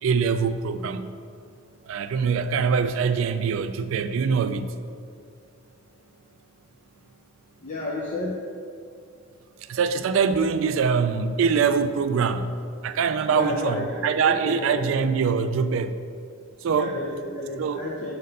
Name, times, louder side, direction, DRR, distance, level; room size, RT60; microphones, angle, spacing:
voice 1, 0.0-1.2 1.9-4.8 9.6-12.6 12.8-16.1 16.6-17.0 17.6-17.8, right 6 dB, 85° right, 11 dB, 0.3 m, -24 dB
voice 2, 7.6-8.4 13.3-14.9 16.7-18.2, left 2 dB, 40° left, -4 dB, 0.6 m, -31 dB
5.4 x 4.0 x 5.2 m, 2.3 s
head